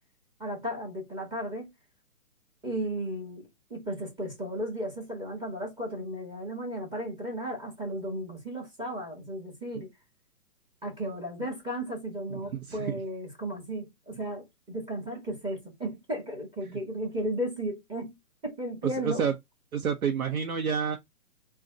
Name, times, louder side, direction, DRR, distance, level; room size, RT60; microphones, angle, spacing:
voice 1, 0.4-1.7 2.6-9.9 10.8-18.2 18.4-19.2, right 1 dB, 10° right, 2.0 m, -35 dB
voice 2, 12.3-13.0 19.0-19.3 19.7-21.0, right 7 dB, 75° right, 1.0 m, -29 dB
3.9 x 2.5 x 3.9 m
hypercardioid pair, 140°, 42 cm